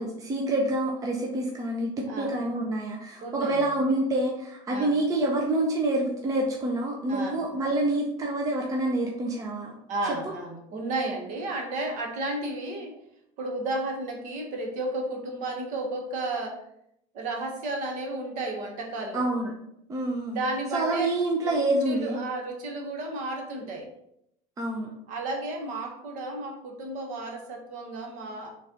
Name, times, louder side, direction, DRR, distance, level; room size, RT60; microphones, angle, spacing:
voice 1, 0.0-9.7 19.1-19.5 19.9-20.4 20.7-22.2 24.6-24.9, right 1 dB, 20° right, 0 dB, 0.7 m, -27 dB
voice 2, 2.1-2.4 3.2-3.6 4.7-4.9 7.1-7.5 9.9-12.9 13.4-16.6 17.1-19.2 20.3-21.1 21.4-23.8 25.1-28.5, right 2 dB, 50° right, 2 dB, 1.2 m, -33 dB
4.1 x 3.2 x 3.8 m, 0.76 s
supercardioid pair, 125°, 16 cm